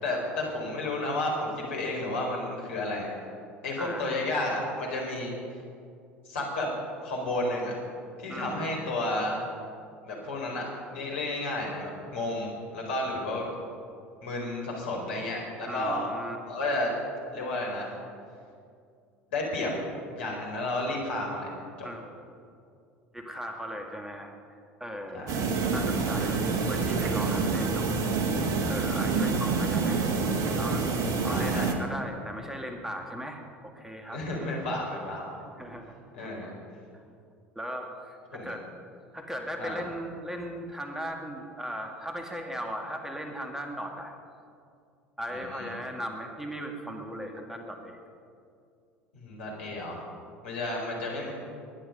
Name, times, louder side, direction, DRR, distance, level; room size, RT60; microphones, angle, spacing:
voice 1, 0.0-3.1 3.6-5.3 6.2-6.7 7.0-7.7 8.2-9.4 10.0-10.6 10.9-13.5 14.2-16.1 16.5-16.9 17.3-17.9 19.3-19.7 20.1-21.5 21.8-21.9 25.1-25.4 31.2-31.7 34.1-35.2 36.1-36.5 38.3-38.5 39.6-39.8 45.3-45.7 49.1-50.0 50.4-51.3, left 2 dB, 70° left, -1 dB, 4.6 m, -32 dB
voice 2, 3.8-4.2 8.3-8.7 15.7-16.4 21.8-22.1 23.1-24.3 24.8-25.3 25.7-26.4 26.7-28.0 28.6-30.0 30.5-34.2 35.6-36.5 36.9-37.0 37.6-38.7 39.1-44.1 45.2-48.0, equal, 5° right, 3 dB, 1.9 m, -38 dB
sound 1, 25.3-31.7, right 4 dB, 50° right, 1.8 m, -27 dB
21.0 x 11.0 x 5.6 m, 2.4 s
figure-of-eight pair, 70°, 7 cm